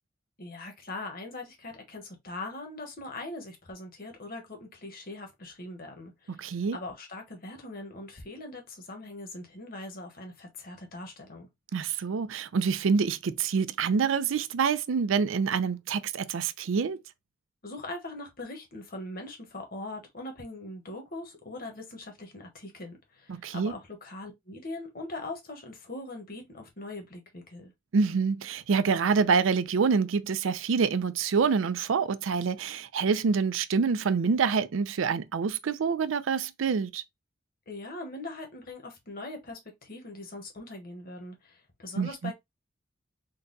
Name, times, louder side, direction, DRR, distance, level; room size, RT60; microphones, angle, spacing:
voice 1, 0.4-11.5 17.6-27.7 37.7-42.3, left 2 dB, 45° left, 1.2 m, -41 dB
voice 2, 6.3-6.8 11.7-17.0 23.3-23.7 27.9-37.0 42.0-42.3, right 5 dB, 85° right, 0.4 m, -26 dB
3.9 x 2.2 x 3.9 m
head